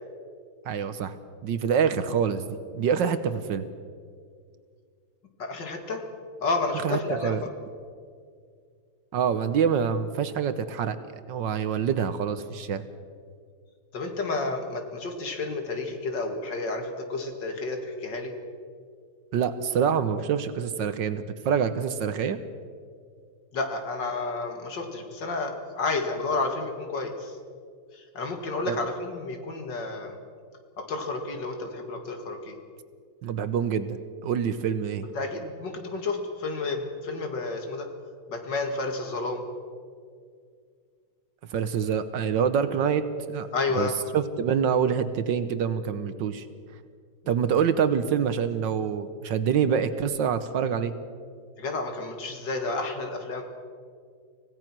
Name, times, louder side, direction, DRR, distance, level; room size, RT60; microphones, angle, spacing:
voice 1, 0.6-1.2 1.4-3.7 6.8-7.4 9.1-11.0 11.3-12.8 19.3-22.4 28.7-28.8 33.2-35.0 41.5-43.5 43.7-46.5 47.3-50.9, right 7 dB, 65° right, 12 dB, 1.5 m, -26 dB
voice 2, 5.4-6.1 6.4-7.5 13.9-18.3 23.5-27.4 27.9-30.2 30.8-32.6 35.1-37.9 38.3-39.4 43.5-44.0 51.6-53.4, left 3 dB, 60° left, 5 dB, 2.6 m, -31 dB
25.0 x 17.0 x 6.1 m, 2.1 s
omnidirectional pair, 2.3 m